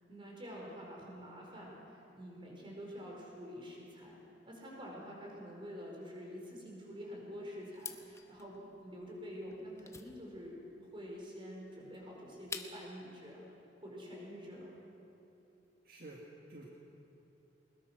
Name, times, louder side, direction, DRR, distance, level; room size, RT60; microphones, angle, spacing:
voice 1, 0.1-4.2 4.4-10.6 10.9-13.4 13.8-14.7, equal, 30° right, -2 dB, 4.8 m, -47 dB
sound 1, 7.7-13.0, left 4 dB, 15° left, 1.0 m, -49 dB
voice 2, 15.8-16.7, right 1 dB, 55° right, -2 dB, 1.9 m, -51 dB
21.0 x 20.5 x 6.3 m, 2.9 s
head